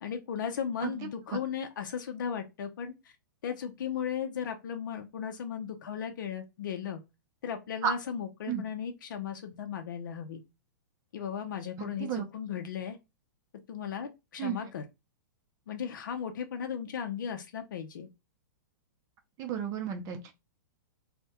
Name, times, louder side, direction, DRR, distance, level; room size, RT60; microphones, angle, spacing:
voice 1, 0.0-3.1 3.4-7.0 7.4-10.4 11.1-13.0 13.7-14.9 15.7-18.1, left 8 dB, 75° left, 0.5 m, -36 dB
voice 2, 11.8-12.2 14.4-14.6 19.4-20.3, right 8 dB, 30° right, 0.4 m, -32 dB
2.2 x 2.1 x 2.7 m
hypercardioid pair, 130°, 11 cm